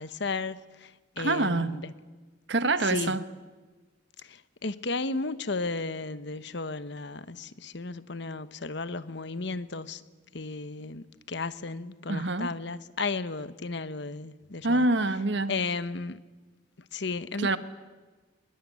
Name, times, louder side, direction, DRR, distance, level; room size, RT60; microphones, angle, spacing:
voice 1, 0.0-1.9 2.8-3.2 4.2-10.0 10.3-14.9 15.5-16.2 16.9-17.5, left 3 dB, 60° left, 1.1 m, -34 dB
voice 2, 1.2-1.8 2.5-3.2 12.1-12.5 14.6-15.5 17.4-17.6, right 2 dB, 60° right, 1.4 m, -26 dB
23.5 x 22.0 x 9.7 m
head